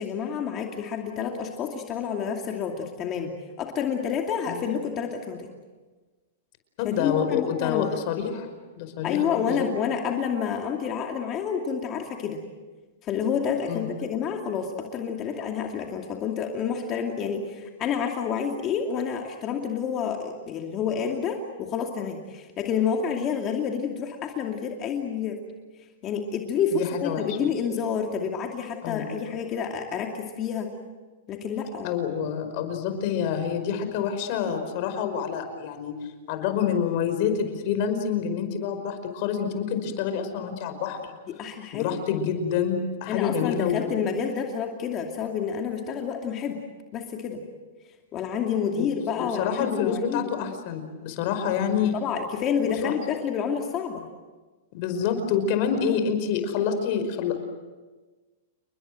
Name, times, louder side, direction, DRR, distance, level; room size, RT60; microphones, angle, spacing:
voice 1, 0.0-5.5 6.8-7.9 9.0-12.4 13.0-25.4 26.0-30.7 31.3-32.0 41.3-42.0 43.1-46.6 46.9-47.4 48.1-50.5 51.9-54.0, left 7 dB, 30° left, 2 dB, 2.6 m, -29 dB
voice 2, 6.8-8.5 8.8-9.7 13.7-13.9 26.7-27.4 28.8-29.1 31.8-41.0 41.7-44.0 48.8-48.9 49.2-51.9 52.6-52.9 54.7-57.4, left 7 dB, 50° left, 7 dB, 5.2 m, -27 dB
30.0 x 21.0 x 7.7 m, 1.3 s
hypercardioid pair, 140°, 0 cm